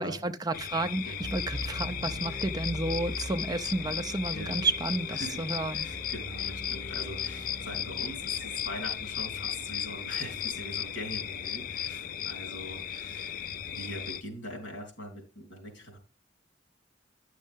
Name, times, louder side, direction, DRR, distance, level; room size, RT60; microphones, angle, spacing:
voice 1, 0.0-5.9, right 2 dB, 20° right, 0.5 m, -31 dB
sound 1, 0.5-14.2, left 9 dB, 50° left, 0.5 m, -36 dB
sound 2, 1.0-11.0, equal, 5° left, 4.2 m, -42 dB
voice 2, 4.3-4.6 5.1-5.4 5.7-16.0, equal, 75° left, 3.6 m, -42 dB
10.0 x 6.5 x 3.5 m
head